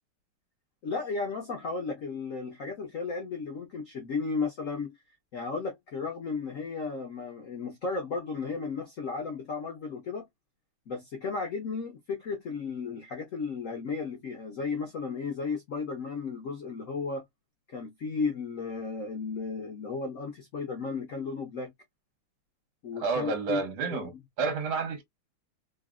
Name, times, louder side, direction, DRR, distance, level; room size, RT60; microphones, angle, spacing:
voice 1, 0.8-4.9 5.3-10.3 10.9-17.2 17.7-21.7 22.8-23.6 23.9-24.1, left 4 dB, 90° left, 0.7 m, -34 dB
voice 2, 23.0-25.0, right 4 dB, 70° right, 1.7 m, -30 dB
3.8 x 2.0 x 2.4 m
omnidirectional pair, 2.4 m